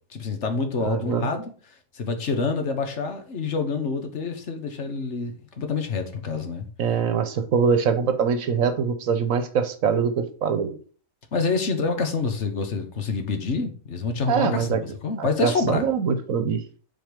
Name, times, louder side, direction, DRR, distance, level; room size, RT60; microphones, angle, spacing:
voice 1, 0.1-1.5 1.9-6.7 11.3-15.8, left 4 dB, 60° left, 1.5 m, -27 dB
voice 2, 0.8-1.3 6.8-10.8 14.3-14.8 15.2-16.6, right 6 dB, 80° right, 1.3 m, -23 dB
7.8 x 4.3 x 5.1 m
omnidirectional pair, 1.4 m